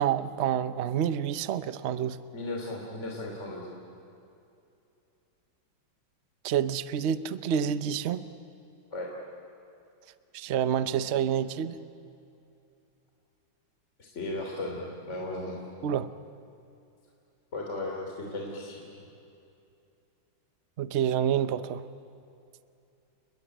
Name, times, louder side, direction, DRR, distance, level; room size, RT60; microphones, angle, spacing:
voice 1, 0.0-2.2 6.4-8.2 10.3-11.8 15.8-16.1 20.8-21.8, right 9 dB, 80° right, 12 dB, 0.6 m, -28 dB
voice 2, 2.3-3.7 8.9-9.1 14.0-15.6 17.5-19.1, left 2 dB, 35° left, -1 dB, 3.5 m, -36 dB
29.5 x 21.5 x 9.0 m, 2.7 s
omnidirectional pair, 2.3 m